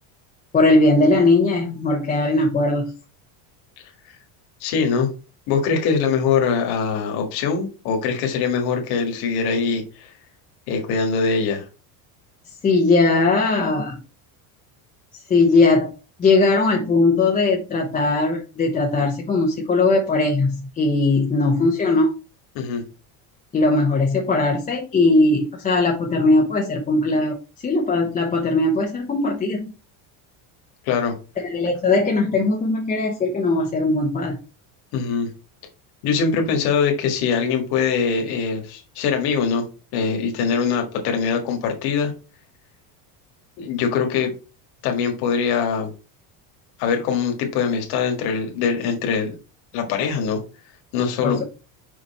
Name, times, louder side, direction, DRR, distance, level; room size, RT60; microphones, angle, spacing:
voice 1, 0.5-2.9 12.6-14.0 15.3-15.9 16.2-22.1 23.5-27.3 27.6-29.6 31.4-34.4 51.2-51.4, left 3 dB, 20° left, 0 dB, 0.8 m, -19 dB
voice 2, 4.6-5.1 5.5-10.1 10.7-11.7 22.6-22.8 30.9-31.1 34.9-35.3 36.0-39.7 39.9-42.1 43.6-44.3 44.8-45.9 46.8-49.4 49.7-50.4 50.9-51.4, left 5 dB, 60° left, 3 dB, 1.8 m, -22 dB
5.4 x 4.8 x 4.1 m, 0.33 s
cardioid pair, 160°, 43 cm